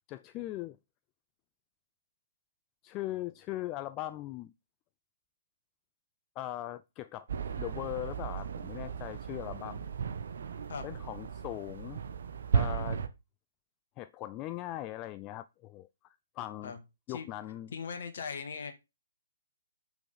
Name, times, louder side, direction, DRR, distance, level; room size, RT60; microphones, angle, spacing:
voice 1, 0.1-0.8 2.8-4.5 6.4-7.3 7.6-9.9 10.8-12.0 12.5-13.0 14.0-16.7 17.1-17.7, left 15 dB, 25° left, 0.3 m, -40 dB
sound 1, 7.3-13.1, right 7 dB, 55° right, 1.1 m, -35 dB
voice 2, 17.7-18.7, left 6 dB, 50° left, 1.9 m, -39 dB
6.1 x 5.8 x 5.5 m
figure-of-eight pair, 130°, 0 cm